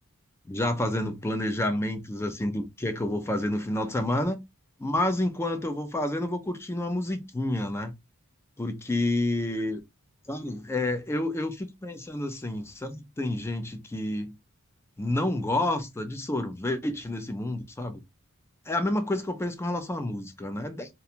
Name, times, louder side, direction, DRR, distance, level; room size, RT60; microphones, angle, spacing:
voice 1, 0.5-4.4 4.8-7.9 8.6-9.8 10.3-14.3 15.0-18.0 18.7-20.9, left 1 dB, 10° left, 0.4 m, -29 dB
2.5 x 2.2 x 2.7 m
head